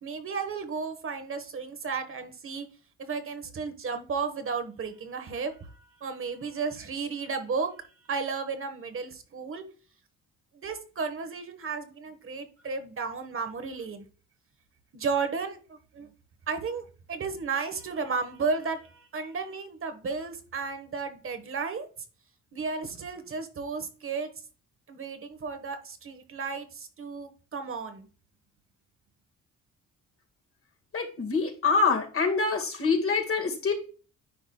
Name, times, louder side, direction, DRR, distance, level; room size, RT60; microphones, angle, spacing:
voice 1, 0.0-2.6 3.0-7.7 8.1-9.6 10.5-14.0 14.9-16.1 16.5-21.9 22.5-24.3 24.9-28.1, right 5 dB, 45° right, 8 dB, 1.3 m, -33 dB
voice 2, 30.9-33.7, left 4 dB, 45° left, 4 dB, 1.8 m, -25 dB
9.9 x 4.9 x 2.3 m, 0.37 s
cardioid pair, 90°, 30 cm